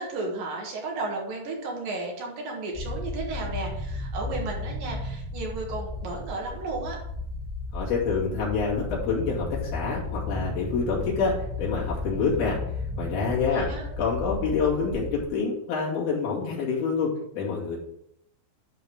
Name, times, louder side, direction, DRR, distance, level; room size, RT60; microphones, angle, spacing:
voice 1, 0.0-7.0 13.5-13.9, right 3 dB, 65° right, 0 dB, 3.0 m, -33 dB
sound 1, 2.7-15.3, left 2 dB, 10° right, 1.3 m, -34 dB
voice 2, 7.7-12.6 13.0-13.7 14.0-17.8, left 5 dB, 70° left, -5 dB, 4.3 m, -27 dB
11.0 x 4.0 x 5.2 m, 0.75 s
omnidirectional pair, 4.5 m